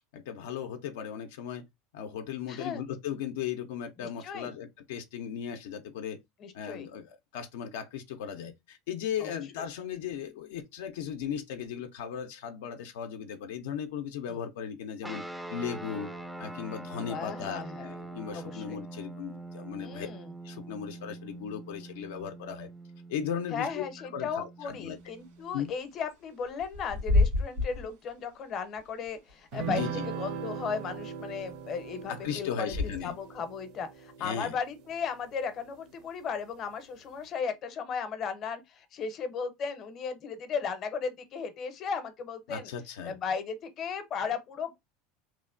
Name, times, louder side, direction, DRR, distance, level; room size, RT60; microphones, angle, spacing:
voice 1, 0.1-1.6 1.9-6.2 6.5-15.2 15.5-16.1 16.4-20.1 20.4-22.7 23.1-23.8 24.1-25.0 25.5-25.7 29.6-30.1 32.1-33.1 34.2-34.6 42.5-43.2, left 8 dB, 85° left, 0.4 m, -37 dB
voice 2, 2.5-2.8 4.0-4.5 6.4-6.9 9.2-9.4 14.3-14.4 17.1-17.9 18.3-18.8 19.8-20.3 23.5-32.7 33.0-42.7 43.0-44.8, left 6 dB, 40° left, 0.6 m, -36 dB
sound 1, 15.0-25.7, right 2 dB, 5° right, 0.3 m, -44 dB
Bird / Wind, 24.6-33.3, left 2 dB, 85° right, 1.7 m, -33 dB
sound 2, 29.5-35.2, right 6 dB, 60° right, 0.5 m, -39 dB
3.0 x 2.1 x 2.4 m
supercardioid pair, 125°, 0 cm